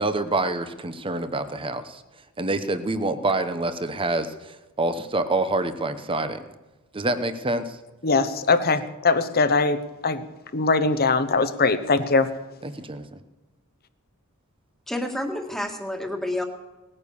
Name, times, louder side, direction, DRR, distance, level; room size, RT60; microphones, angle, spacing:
voice 1, 0.0-2.0 2.4-6.4 6.9-7.8 12.6-13.0, right 2 dB, 25° right, 10 dB, 0.9 m, -26 dB
voice 2, 8.0-10.2 10.5-12.3, left 4 dB, 45° left, 11 dB, 1.0 m, -21 dB
voice 3, 14.9-16.5, left 1 dB, ahead, 3 dB, 1.8 m, -29 dB
19.0 x 9.8 x 7.0 m, 1.1 s
head